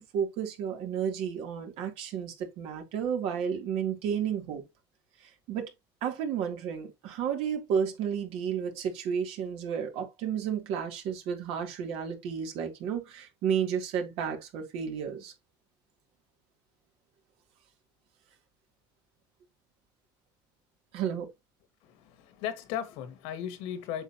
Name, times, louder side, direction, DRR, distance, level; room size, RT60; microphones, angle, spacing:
voice 1, 0.0-4.6 5.2-5.7 6.0-15.3 20.9-21.3, right 7 dB, 70° right, 3.1 m, -32 dB
voice 2, 21.8-24.0, left 10 dB, 80° left, 1.9 m, -36 dB
7.9 x 6.4 x 2.9 m
supercardioid pair, 110°, 11 cm